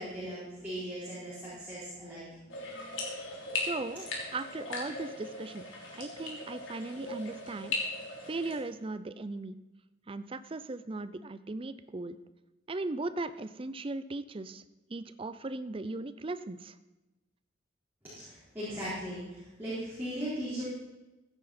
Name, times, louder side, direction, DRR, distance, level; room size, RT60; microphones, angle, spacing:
voice 1, 0.0-3.1 18.0-20.6, equal, 10° right, -11 dB, 4.2 m, -39 dB
sound 1, 2.5-8.6, left 2 dB, 75° left, 3.3 m, -38 dB
voice 2, 3.6-5.6 5.9-7.7 8.3-9.6 10.1-12.2 12.7-14.6 14.9-16.8, right 2 dB, 30° right, 13 dB, 0.5 m, -38 dB
15.5 x 9.7 x 4.3 m, 1.0 s
head